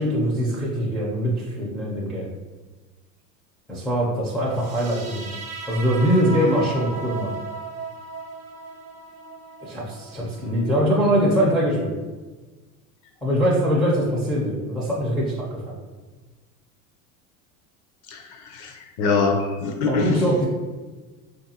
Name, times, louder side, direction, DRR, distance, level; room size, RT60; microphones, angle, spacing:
voice 1, 0.0-2.3 3.7-5.4 5.7-7.3 9.6-11.9 13.2-15.7 19.9-20.5, equal, ahead, -6 dB, 0.5 m, -22 dB
sound 1, 4.5-11.5, right 2 dB, 35° right, 0.8 m, -37 dB
voice 2, 18.1-20.1, left 4 dB, 55° left, 3 dB, 0.6 m, -24 dB
3.4 x 2.6 x 2.8 m, 1.3 s
hypercardioid pair, 95°, 44 cm